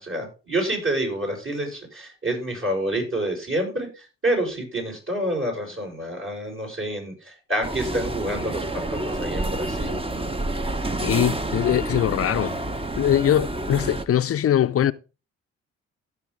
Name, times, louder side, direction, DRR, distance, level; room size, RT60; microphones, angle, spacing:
voice 1, 0.0-8.6 8.9-10.2, right 1 dB, 40° right, 6.6 m, -28 dB
sound 1, 7.6-14.0, right 2 dB, 15° right, 1.1 m, -28 dB
voice 2, 11.0-12.6 13.0-14.9, left 11 dB, 45° left, 0.6 m, -22 dB
15.5 x 6.0 x 3.7 m
hypercardioid pair, 55°, 32 cm